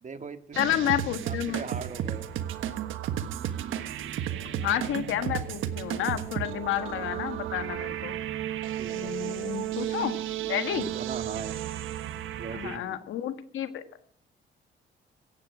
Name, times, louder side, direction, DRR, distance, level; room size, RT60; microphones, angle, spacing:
voice 1, 0.0-0.7 1.2-2.3 8.8-9.6 10.7-11.6 12.4-13.0, right 5 dB, 40° right, 8 dB, 1.8 m, -40 dB
voice 2, 0.5-1.6 4.6-8.1 8.9-10.2 10.5-10.9 12.5-13.8, left 11 dB, 80° left, 10 dB, 1.5 m, -30 dB
sound 1, 0.5-12.8, right 11 dB, 85° right, 1.4 m, -33 dB
17.0 x 15.5 x 5.0 m, 0.66 s
cardioid pair, 90°, 20 cm